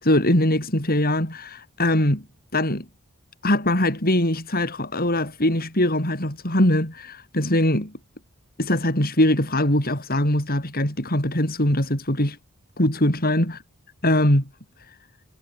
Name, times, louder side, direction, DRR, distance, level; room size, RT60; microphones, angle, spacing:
voice 1, 0.0-2.2 2.5-2.8 3.4-7.9 8.6-12.4 12.8-13.6 14.0-14.4, left 1 dB, 45° left, 7.8 m, -22 dB
head